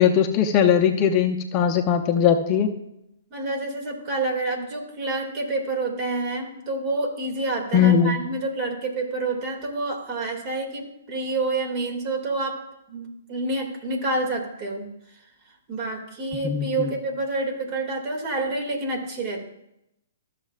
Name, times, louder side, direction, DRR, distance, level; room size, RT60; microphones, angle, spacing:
voice 1, 0.0-2.7 7.7-8.1 16.4-16.9, left 8 dB, 30° left, 4 dB, 0.7 m, -19 dB
voice 2, 3.3-12.6 12.9-14.9 15.7-19.5, right 2 dB, 35° right, 1 dB, 2.4 m, -28 dB
14.0 x 6.6 x 2.5 m, 0.84 s
figure-of-eight pair, 125°, 0 cm